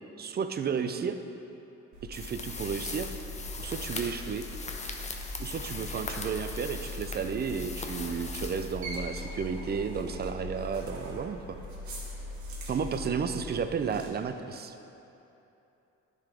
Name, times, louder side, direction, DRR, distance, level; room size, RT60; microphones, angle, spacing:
voice 1, 0.2-1.2 2.1-3.1 3.6-4.5 5.4-11.6 12.7-14.7, right 6 dB, 35° right, 8 dB, 0.4 m, -32 dB
sound 1, 1.9-14.1, left 1 dB, 70° right, 1.2 m, -41 dB
sound 2, 2.1-9.3, left 3 dB, 25° left, 0.6 m, -40 dB
9.9 x 3.9 x 3.7 m, 2.9 s
cardioid pair, 90°, 30 cm